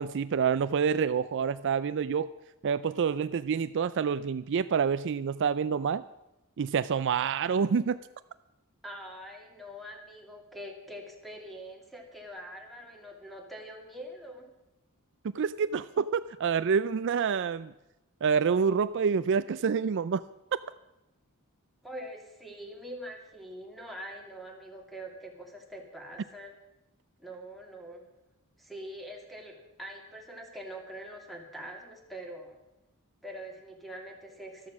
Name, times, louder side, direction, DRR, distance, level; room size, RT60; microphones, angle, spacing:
voice 1, 0.0-2.3 2.6-6.0 6.6-8.0 15.3-17.7 18.2-20.2, right 6 dB, 55° right, 14 dB, 0.4 m, -27 dB
voice 2, 8.8-14.5 21.8-26.5 27.2-28.1 28.6-32.6 33.2-34.7, equal, ahead, 1 dB, 2.4 m, -44 dB
13.5 x 13.0 x 5.9 m, 0.92 s
head